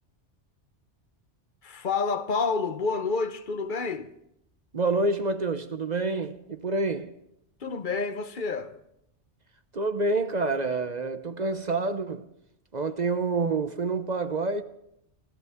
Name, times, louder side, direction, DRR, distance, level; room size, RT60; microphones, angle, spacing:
voice 1, 1.6-4.1 7.6-8.7, left 4 dB, 45° left, 1.0 m, -29 dB
voice 2, 4.7-7.1 9.7-12.3 12.7-14.6, right 3 dB, 40° right, 0.8 m, -27 dB
28.5 x 14.0 x 3.6 m
omnidirectional pair, 1.2 m